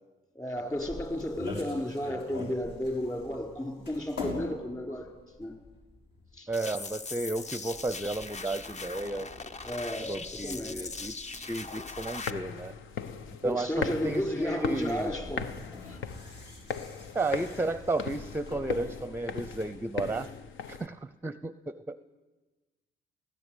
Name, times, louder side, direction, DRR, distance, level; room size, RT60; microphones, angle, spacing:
voice 1, 0.3-5.1 5.4-5.6 6.3-6.5 9.6-10.9 13.3-16.0, left 1 dB, 20° left, 3 dB, 4.4 m, -33 dB
sound 1, 0.6-19.7, left 2 dB, 60° left, 6.6 m, -46 dB
sound 2, 6.5-12.3, left 4 dB, 35° left, 1.0 m, -40 dB
voice 2, 6.5-9.3 10.1-12.7 13.4-15.2 17.1-20.3 20.7-22.0, right 2 dB, 10° right, 14 dB, 0.6 m, -33 dB
sound 3, 12.1-20.9, left 6 dB, 80° left, 1.2 m, -39 dB
20.0 x 17.0 x 9.1 m, 1.2 s
cardioid pair, 90°, 20 cm